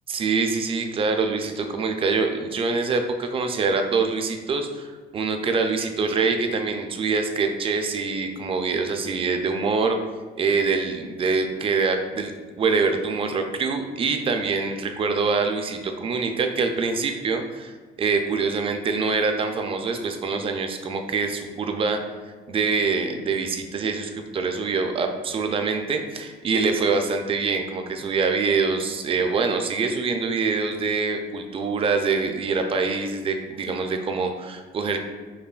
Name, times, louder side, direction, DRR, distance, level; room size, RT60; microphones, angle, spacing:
voice 1, 0.1-10.0 10.4-17.7 18.0-22.0 22.5-35.0, right 4 dB, 35° right, 5 dB, 0.4 m, -25 dB
5.4 x 2.1 x 2.3 m, 1.4 s
cardioid pair, 110°, 17 cm